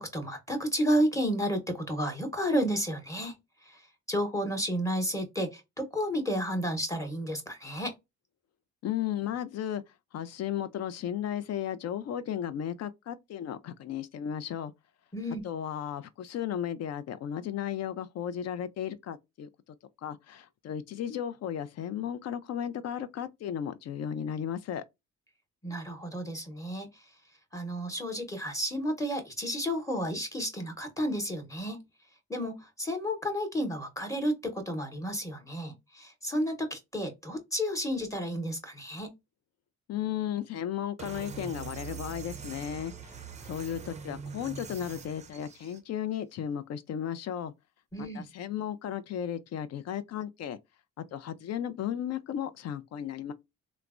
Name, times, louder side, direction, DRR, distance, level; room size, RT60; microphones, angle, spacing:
voice 1, 0.0-3.3 3.6-7.9 15.1-15.4 25.6-27.0 27.5-31.8 32.3-39.1 47.9-48.3, equal, 10° left, 0.9 m, -32 dB
voice 2, 8.8-9.8 10.1-14.7 15.4-19.5 20.0-24.8 39.9-47.5 48.0-50.6 51.1-53.3, left 9 dB, 60° left, 0.4 m, -35 dB
sound 1, 41.0-45.8, right 6 dB, 25° right, 0.4 m, -43 dB
3.2 x 2.0 x 2.4 m
cardioid pair, 90°, 30 cm